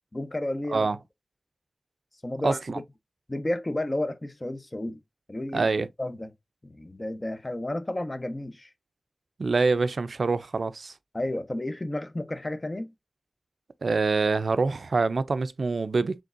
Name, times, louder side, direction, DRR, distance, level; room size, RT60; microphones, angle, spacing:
voice 1, 0.1-0.9 2.2-2.8 3.3-5.0 5.3-6.3 6.6-8.7 11.1-12.9, left 1 dB, 35° left, 0.8 m, -32 dB
voice 2, 2.4-2.8 5.5-5.9 9.4-10.9 13.8-16.2, right 4 dB, 85° right, 0.4 m, -25 dB
5.2 x 3.6 x 2.4 m
wide cardioid pair, 70°, 0 cm